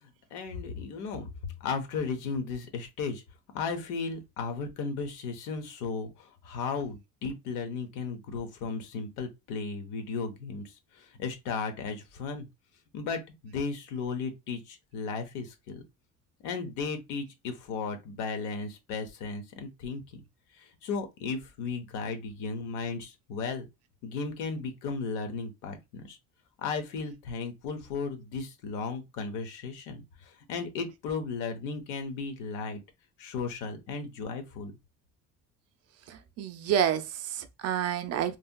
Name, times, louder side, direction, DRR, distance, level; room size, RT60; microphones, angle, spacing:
voice 1, 0.0-3.2 3.5-10.6 10.9-12.5 12.9-15.8 16.4-20.2 20.6-23.7 24.0-26.2 26.6-32.8 33.2-34.7, left 4 dB, 85° left, 0.9 m, -35 dB
voice 2, 36.1-38.4, right 9 dB, 50° right, 0.5 m, -29 dB
3.2 x 2.7 x 2.2 m
cardioid pair, 130°, 31 cm